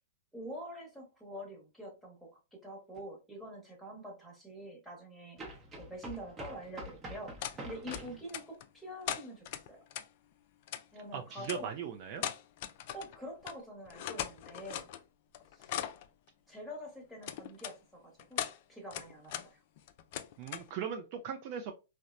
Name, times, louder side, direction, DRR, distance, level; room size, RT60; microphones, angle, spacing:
voice 1, 0.3-9.8 10.9-11.7 12.9-14.9 15.5-15.8 16.5-18.4 18.7-19.6, equal, ahead, 1.0 m, -46 dB
sound 1, 2.9-3.0 5.4-8.2, right 1 dB, 20° right, 0.7 m, -46 dB
sound 2, 7.4-7.6 7.9-8.7 9.1-10.1 10.7-10.8 11.4-11.6 12.2-13.2 13.4-13.6 13.9-15.0 15.3-16.1 17.2-17.7 18.2-18.6 18.9-19.5 19.8-20.7, left 11 dB, 50° left, 0.3 m, -39 dB
voice 2, 11.1-12.2 20.4-21.7, right 7 dB, 45° right, 0.4 m, -39 dB
2.9 x 2.1 x 2.4 m
hypercardioid pair, 130°, 0 cm